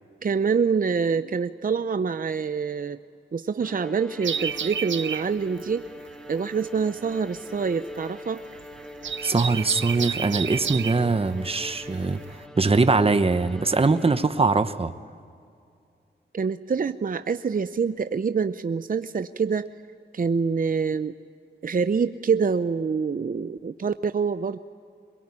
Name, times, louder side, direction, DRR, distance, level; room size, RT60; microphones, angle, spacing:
voice 1, 0.2-3.0 3.3-5.8 6.3-8.4 16.3-19.7 20.1-21.1 21.6-24.6, right 5 dB, 45° right, 11 dB, 0.6 m, -26 dB
Bowed string instrument, 3.6-14.6, left 1 dB, 5° left, 1.7 m, -42 dB
sound 1, 4.2-12.5, right 7 dB, 80° right, 0.7 m, -32 dB
voice 2, 9.2-12.2 12.6-14.9, right 3 dB, 30° right, 11 dB, 1.0 m, -22 dB
22.5 x 22.0 x 9.7 m, 2.4 s
wide cardioid pair, 70°, 19 cm